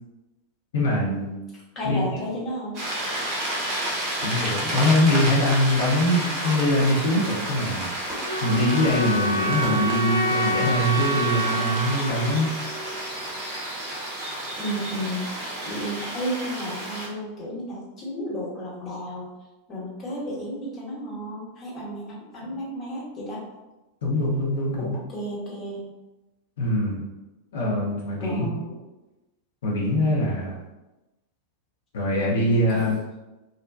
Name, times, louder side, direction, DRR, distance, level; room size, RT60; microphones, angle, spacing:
voice 1, 0.7-1.3 1.8-2.0 4.2-12.5 22.4-22.5 24.0-25.0 26.6-27.0 27.5-28.5 29.6-30.6 31.9-33.0, left 1 dB, 60° left, -4 dB, 0.7 m, -23 dB
voice 2, 1.7-2.8 14.6-19.3 19.7-23.4 24.8-25.9 28.2-28.8 32.7-32.8, equal, 30° left, -5 dB, 1.0 m, -33 dB
sound 1, 2.7-17.1, right 1 dB, 35° right, 0.7 m, -31 dB
sound 2, 3.7-5.7 6.1-6.6 7.1-7.4 7.7-11.4, equal, ahead, 1.2 m, -41 dB
sound 3, 8.3-13.3, right 1 dB, 90° right, 0.3 m, -28 dB
2.5 x 2.2 x 2.3 m, 1.0 s
figure-of-eight pair, 90°, 0 cm